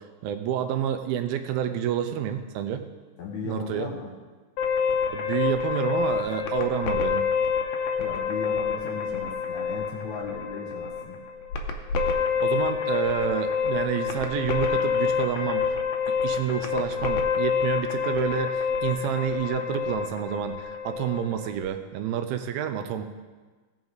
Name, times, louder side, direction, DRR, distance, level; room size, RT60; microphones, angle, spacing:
voice 1, 0.0-2.9 3.5-3.9 5.1-7.3 12.4-15.8 16.2-23.0, right 9 dB, 85° right, 8 dB, 2.4 m, -29 dB
voice 2, 3.2-4.1 8.0-11.2, left 4 dB, 65° left, -2 dB, 2.4 m, -36 dB
sound 1, 4.6-21.7, left 6 dB, 85° left, 1.6 m, -27 dB
16.5 x 5.9 x 3.9 m, 1.3 s
omnidirectional pair, 4.4 m